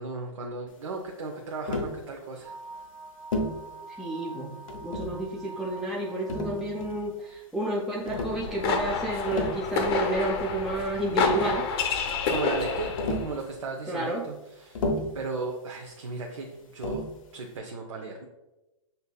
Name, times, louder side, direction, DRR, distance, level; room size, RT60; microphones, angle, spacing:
voice 1, 0.0-2.5 12.3-14.8 15.1-17.0 17.3-18.2, right 3 dB, 75° right, 1 dB, 0.6 m, -35 dB
Tap, 1.7-2.0 3.3-3.6 4.7-5.2 6.3-7.1 8.1-8.4 9.1-9.6 10.8-10.9 11.1-11.7 13.0-13.4 14.7-15.2 16.8-17.2, left 1 dB, 80° left, 0.7 m, -31 dB
sound 1, 2.4-7.4, right 3 dB, 55° right, 1.2 m, -45 dB
voice 2, 4.0-4.5 4.8-11.6 13.9-14.3, right 2 dB, ahead, -4 dB, 0.4 m, -30 dB
sound 2, 8.2-13.3, left 5 dB, 50° left, 0.7 m, -29 dB
6.5 x 2.7 x 2.2 m, 1.0 s
hypercardioid pair, 130°, 17 cm